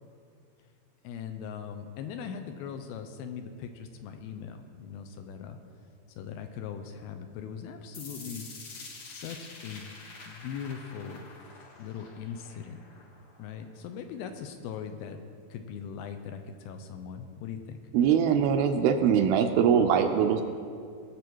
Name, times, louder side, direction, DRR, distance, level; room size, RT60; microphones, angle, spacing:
voice 1, 1.0-5.6 6.2-8.5 9.0-9.9 10.2-11.3 11.8-12.8 13.4-15.2 15.5-17.8, left 7 dB, 80° left, 7 dB, 2.4 m, -40 dB
sound 1, 7.9-13.9, left 3 dB, 60° left, 1.4 m, -47 dB
voice 2, 17.9-20.4, right 7 dB, 80° right, 6 dB, 2.3 m, -22 dB
20.0 x 6.6 x 4.6 m, 2.3 s
omnidirectional pair, 4.6 m